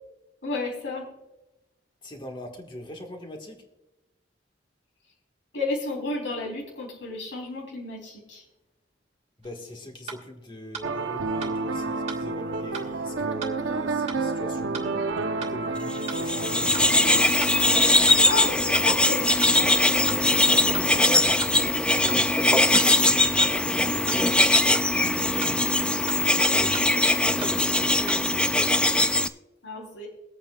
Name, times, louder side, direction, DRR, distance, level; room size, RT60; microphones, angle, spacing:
voice 1, 0.4-1.1 5.5-8.4 18.1-19.7 22.3-22.8 29.6-30.1, left 3 dB, 90° left, -3 dB, 3.6 m, -32 dB
voice 2, 2.0-3.6 9.4-15.1 15.4-17.0 20.0-21.5 21.9-23.4 23.7-25.7 26.4-28.8, equal, 25° left, 3 dB, 1.7 m, -41 dB
sound 1, 9.4-9.5 10.1-10.2 10.7-10.9 11.4-11.5 12.1-12.2 12.7-12.9 13.4-13.5 14.1-14.2 14.7-14.9 15.4-15.5 16.1-16.2 16.7-16.9 17.4-17.5 18.1-18.2 18.7-18.9 19.4-19.5 20.1-20.2 20.7-20.9 21.4-21.5 22.1-22.2 22.7-22.9 23.4-23.5 24.1-24.2 24.7-24.9 25.4-25.5 26.1-26.2 26.7-26.9 27.4-27.5 28.1-28.2, right 6 dB, 35° right, 1.7 m, -37 dB
sound 2, 10.8-17.2, right 3 dB, 85° right, 0.8 m, -29 dB
sound 3, 16.0-29.3, left 2 dB, 5° left, 0.3 m, -21 dB
23.0 x 8.7 x 2.4 m, 0.98 s
head